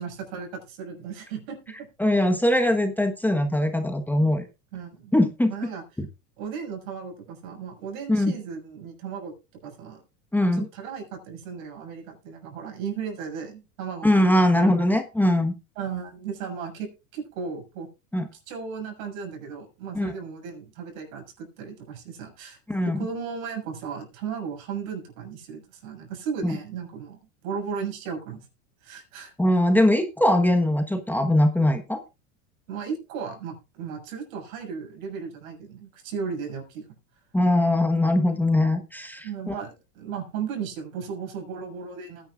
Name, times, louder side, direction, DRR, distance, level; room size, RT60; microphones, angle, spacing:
voice 1, 0.0-1.9 4.7-5.1 5.5-5.8 6.4-9.3 9.6-10.0 10.5-15.0 15.8-17.9 18.5-22.6 22.8-27.2 27.4-28.5 28.8-29.3 32.7-36.8 39.2-42.3, right 6 dB, 70° right, 3 dB, 6.3 m, -35 dB
voice 2, 2.0-4.4 5.1-5.5 8.1-8.3 10.3-10.6 14.0-15.5 18.1-18.3 19.9-20.1 22.7-23.1 26.4-26.6 29.4-32.0 37.3-39.5, left 1 dB, 5° left, 6 dB, 1.2 m, -21 dB
20.0 x 10.0 x 2.4 m, 0.28 s
hypercardioid pair, 110°, 42 cm